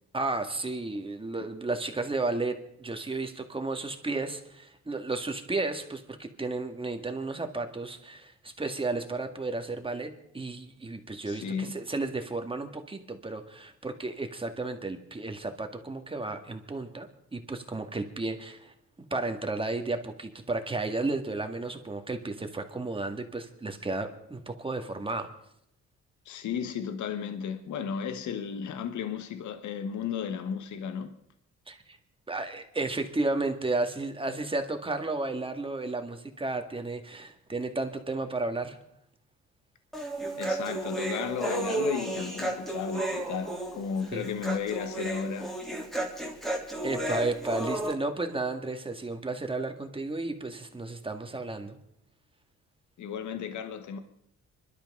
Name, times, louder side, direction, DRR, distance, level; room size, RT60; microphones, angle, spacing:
voice 1, 0.1-18.7 19.1-25.3 31.7-31.8 32.3-38.8 44.1-44.3 46.8-51.8, right 3 dB, 15° right, 1.9 m, -33 dB
voice 2, 11.2-11.7 26.2-31.1 40.4-45.5 53.0-54.0, left 7 dB, 70° left, 1.3 m, -34 dB
Human voice, 39.9-47.9, right 2 dB, ahead, 3.1 m, -33 dB
26.5 x 12.0 x 3.8 m
cardioid pair, 90°, 30 cm